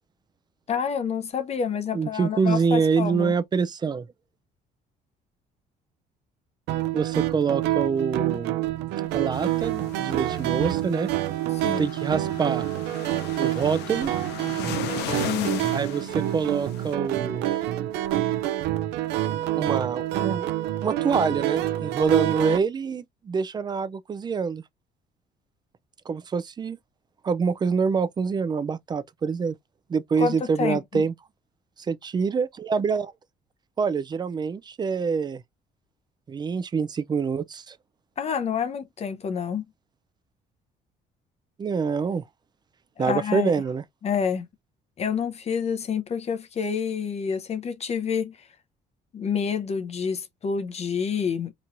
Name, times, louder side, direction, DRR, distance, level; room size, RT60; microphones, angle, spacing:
voice 1, 0.7-3.3 11.6-11.9 15.3-15.7 30.2-31.0 38.2-39.6 43.0-43.5 44.0-44.5 45.0-48.3 49.1-51.5, left 6 dB, 40° left, 0.6 m, -28 dB
voice 2, 1.9-4.1 6.9-8.6 9.1-11.1 11.8-12.7 13.4-14.1 15.7-17.5 19.6-20.5 20.8-24.6 26.1-26.8 27.2-29.5 29.9-31.1 31.9-33.1 33.8-35.4 36.3-37.8 41.6-42.3 43.0-43.8, right 5 dB, 25° right, 0.4 m, -26 dB
sound 1, 6.7-22.6, right 14 dB, 90° right, 0.5 m, -27 dB
sound 2, 9.3-16.9, left 10 dB, 80° left, 0.7 m, -37 dB
4.4 x 3.0 x 2.5 m
cardioid pair, 110°, 17 cm